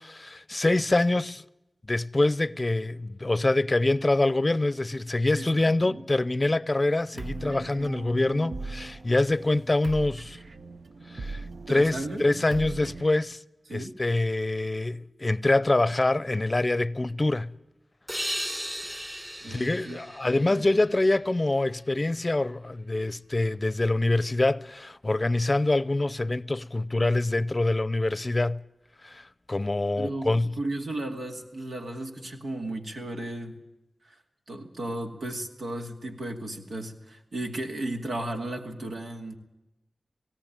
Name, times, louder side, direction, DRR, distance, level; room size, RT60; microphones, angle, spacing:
voice 1, 0.0-1.4 1.9-10.4 11.1-13.4 13.7-17.5 19.5-28.6 29.0-30.5, left 2 dB, 40° left, 0.6 m, -25 dB
voice 2, 5.3-6.0 11.4-12.2 13.7-13.9 19.4-20.0 20.2-20.7 30.0-33.6 34.0-34.2 34.5-39.4, right 1 dB, 85° right, 2.4 m, -35 dB
sound 1, 7.1-13.1, right 3 dB, 70° right, 0.9 m, -39 dB
sound 2, 18.1-21.6, equal, 15° right, 3.2 m, -36 dB
18.0 x 17.5 x 8.9 m
cardioid pair, 40°, 0 cm